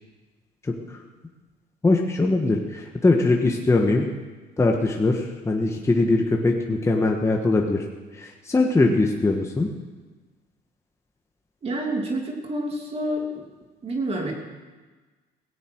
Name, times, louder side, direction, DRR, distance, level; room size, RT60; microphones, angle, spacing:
voice 1, 0.6-1.0 1.8-4.1 4.6-7.8 8.1-9.7, left 2 dB, 15° left, 1 dB, 1.4 m, -21 dB
voice 2, 11.6-13.4 13.8-14.3, right 1 dB, 35° right, 1 dB, 2.8 m, -28 dB
17.5 x 16.0 x 4.6 m, 1.3 s
cardioid pair, 110°, 17 cm